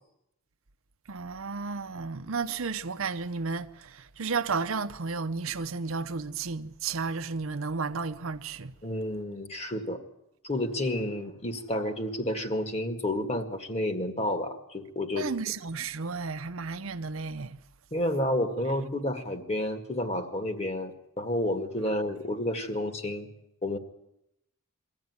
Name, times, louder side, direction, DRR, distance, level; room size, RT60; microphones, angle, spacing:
voice 1, 1.1-8.7 15.2-17.6, right 4 dB, 65° right, 0.8 m, -33 dB
voice 2, 8.8-10.0 10.4-15.3 17.9-23.3 23.6-23.8, left 1 dB, 30° left, 1.9 m, -30 dB
23.0 x 15.0 x 9.6 m
head